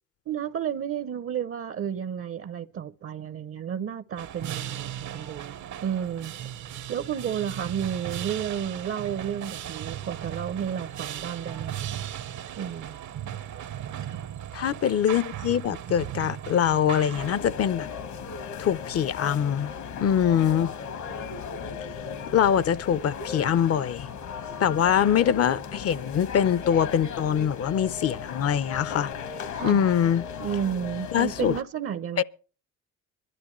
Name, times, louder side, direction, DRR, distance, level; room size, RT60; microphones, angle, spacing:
voice 1, 0.3-5.6 5.8-6.3 6.9-11.9 12.6-13.0 14.1-14.2 29.6-29.9 30.4-32.2, right 8 dB, 50° right, 0.6 m, -32 dB
sound 1, 4.2-17.4, right 11 dB, 70° right, 0.9 m, -37 dB
voice 2, 14.5-17.9 18.6-19.7 20.0-20.7 22.3-24.1 24.6-29.1 29.6-30.2 31.1-31.6 32.2-32.3, left 9 dB, 55° left, 0.6 m, -23 dB
sound 2, 17.1-31.6, left 6 dB, 70° left, 1.4 m, -36 dB
23.0 x 12.0 x 3.1 m
cardioid pair, 90°, 30 cm